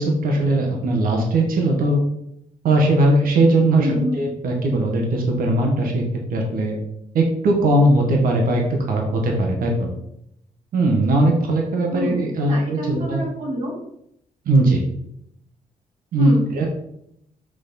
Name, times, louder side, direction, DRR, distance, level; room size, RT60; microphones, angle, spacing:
voice 1, 0.0-2.0 2.6-6.0 6.3-6.8 7.1-9.9 10.7-13.2 14.4-14.8 16.1-16.7, right 1 dB, 85° right, 1 dB, 1.5 m, -19 dB
voice 2, 3.8-4.1 11.9-13.7 16.2-16.7, equal, 55° right, -3 dB, 3.1 m, -27 dB
6.2 x 6.2 x 4.3 m, 0.74 s
wide cardioid pair, 150°, 15 cm